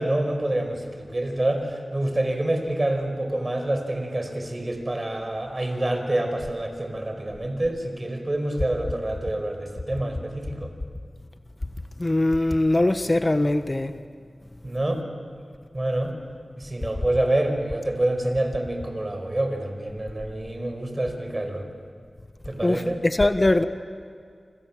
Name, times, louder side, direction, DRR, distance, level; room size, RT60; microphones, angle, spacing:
voice 1, 0.0-10.7 14.6-15.0 15.7-16.2 16.6-21.7 22.5-23.0, right 1 dB, 35° right, 5 dB, 5.2 m, -27 dB
voice 2, 12.0-13.9 22.6-23.6, left 2 dB, 35° left, 9 dB, 1.1 m, -21 dB
28.5 x 26.5 x 7.5 m, 2.2 s
wide cardioid pair, 50°, 0 cm